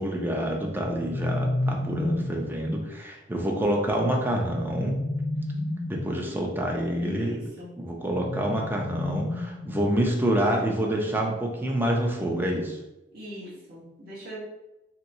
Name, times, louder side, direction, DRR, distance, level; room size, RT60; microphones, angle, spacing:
voice 1, 0.0-5.0 5.9-7.4 7.8-12.8, right 1 dB, 10° right, 0 dB, 0.4 m, -27 dB
sound 1, 0.7-2.5 4.4-6.3 8.1-10.0, left 1 dB, 50° left, 0.4 m, -31 dB
voice 2, 7.0-7.7 13.1-14.4, equal, 55° right, -6 dB, 1.1 m, -41 dB
3.0 x 2.9 x 2.6 m, 0.96 s
head